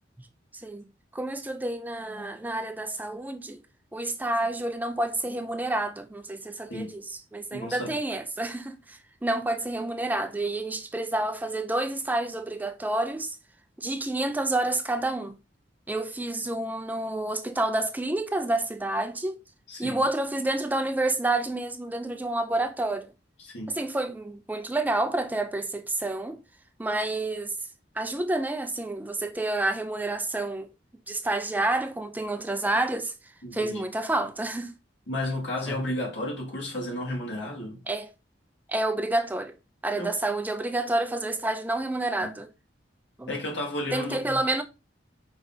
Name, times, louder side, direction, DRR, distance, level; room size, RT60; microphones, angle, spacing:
voice 1, 0.5-0.9 1.1-3.6 3.9-13.4 13.8-15.4 15.9-19.4 19.8-23.1 23.7-26.4 26.8-27.6 28.0-30.7 31.1-33.1 33.5-34.7 35.7-35.8 37.9-38.1 38.7-39.5 39.8-42.5 43.2-43.4 43.9-44.6, right 2 dB, 10° right, 0.4 m, -29 dB
voice 2, 7.5-8.0 19.7-20.0 23.4-23.7 33.4-33.8 35.1-37.8 40.0-40.1 42.2-42.3 43.3-44.4, left 1 dB, 90° left, 2.1 m, -33 dB
4.9 x 3.7 x 2.7 m
head